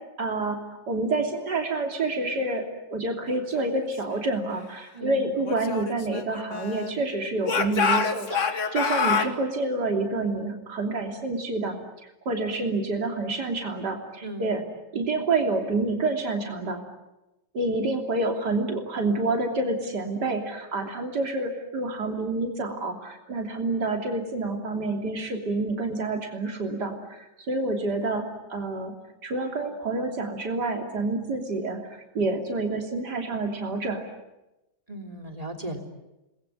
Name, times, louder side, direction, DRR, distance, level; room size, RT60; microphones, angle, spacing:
voice 1, 0.2-2.6 2.9-11.8 12.0-14.6 14.9-16.8 17.5-28.2 28.5-28.9 29.2-34.0, right 2 dB, 65° right, 3 dB, 3.7 m, -28 dB
voice 2, 4.9-5.4 14.2-14.6 34.9-35.8, right 1 dB, 20° right, 3 dB, 3.3 m, -36 dB
Speech / Shout, 5.4-7.0 7.4-9.3, left 5 dB, 45° left, 1.8 m, -26 dB
29.0 x 21.0 x 9.9 m, 0.98 s
omnidirectional pair, 1.9 m